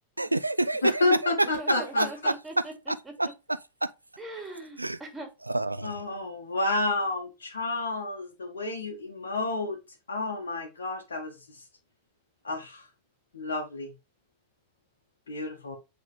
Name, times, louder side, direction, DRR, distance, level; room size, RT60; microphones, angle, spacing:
voice 1, 0.2-2.3 3.8-3.9 4.8-5.0 5.5-6.0, right 2 dB, 85° right, 0.3 m, -27 dB
voice 2, 0.8-2.1 5.8-9.8 10.1-11.3 12.4-12.8 13.3-13.9 15.3-15.8, left 2 dB, 70° left, 1.5 m, -30 dB
voice 3, 1.6-2.7 4.2-5.3, right 2 dB, 10° right, 2.4 m, -40 dB
7.8 x 3.6 x 3.4 m
figure-of-eight pair, 90°, 0 cm